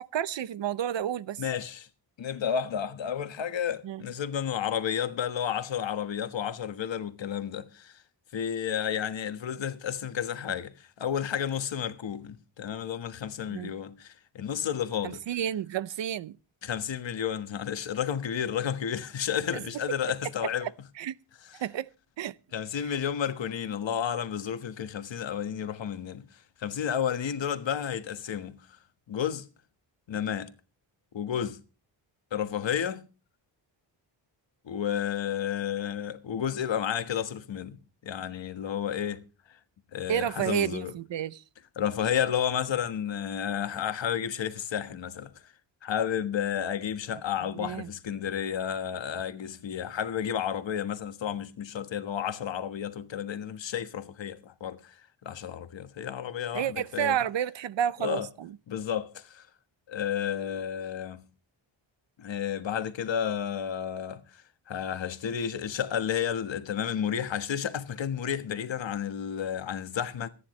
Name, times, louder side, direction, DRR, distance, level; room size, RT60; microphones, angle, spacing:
voice 1, 0.1-1.4 3.8-4.0 13.5-13.7 15.0-16.4 19.5-19.6 20.6-20.7 21.0-21.2 21.6-21.9 22.2-22.3 40.1-41.4 47.6-47.9 56.5-58.6, right 10 dB, 70° right, 0.7 m, -30 dB
voice 2, 1.4-1.9 2.2-8.0 8.3-15.2 16.6-20.7 21.5-21.6 22.5-26.3 26.6-28.8 29.1-29.4 30.1-30.5 31.1-31.6 32.3-33.1 34.6-39.2 39.5-39.6 39.9-40.9 41.8-45.5 45.8-54.9 55.2-57.2 58.0-58.3 58.7-59.5 59.9-61.2 62.2-70.3, left 8 dB, 70° left, 1.5 m, -31 dB
26.5 x 10.0 x 3.1 m
wide cardioid pair, 160°, 46 cm